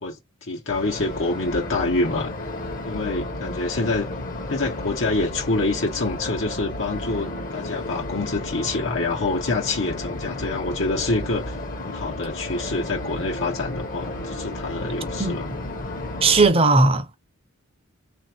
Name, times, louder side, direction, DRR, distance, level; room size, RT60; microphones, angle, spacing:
voice 1, 0.0-2.3 2.8-4.1 4.5-15.5, left 3 dB, 75° left, 1.1 m, -26 dB
sound 1, 0.7-16.5, left 2 dB, 45° left, 1.0 m, -32 dB
voice 2, 15.2-15.6 16.2-17.2, right 3 dB, 30° right, 0.6 m, -18 dB
3.4 x 2.7 x 4.4 m
head